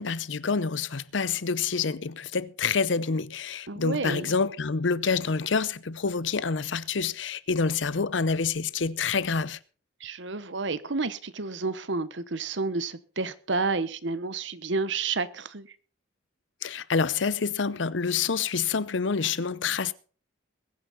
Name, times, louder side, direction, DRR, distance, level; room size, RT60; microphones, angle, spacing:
voice 1, 0.0-9.6 16.6-19.9, left 5 dB, 75° left, 0.7 m, -27 dB
voice 2, 3.7-4.3 10.0-15.7, right 3 dB, 75° right, 1.0 m, -30 dB
21.5 x 9.3 x 4.1 m
head